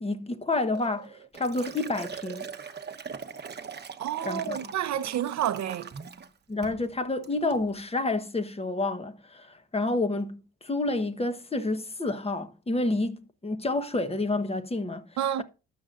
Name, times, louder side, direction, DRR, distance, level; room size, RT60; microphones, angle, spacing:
voice 1, 0.0-2.5 4.2-4.7 6.5-15.1, left 2 dB, 20° left, 1.1 m, -29 dB
Liquid, 0.7-6.3 6.6-6.9 7.2-7.6, right 6 dB, 35° right, 1.0 m, -41 dB
voice 2, 4.0-5.9 15.2-15.4, right 11 dB, 65° right, 0.8 m, -29 dB
12.5 x 7.7 x 2.5 m
cardioid pair, 90°, 30 cm